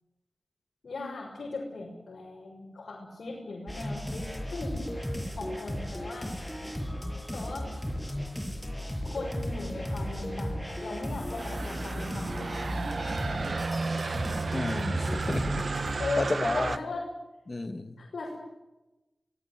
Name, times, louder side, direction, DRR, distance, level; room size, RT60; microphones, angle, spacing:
voice 1, 0.8-4.2 4.5-4.8 5.4-6.3 7.3-7.7 9.1-12.8 16.0-17.0 18.0-18.3, left 3 dB, 90° left, -3 dB, 6.5 m, -38 dB
sound 1, 3.7-16.0, equal, 5° left, 6.5 m, -35 dB
sound 2, 11.4-16.8, right 4 dB, 65° right, 1.0 m, -33 dB
voice 2, 14.5-15.7 16.2-16.8 17.5-18.0, left 2 dB, 40° left, 9 dB, 2.0 m, -32 dB
24.5 x 19.0 x 9.1 m, 1.0 s
wide cardioid pair, 85°, 0 cm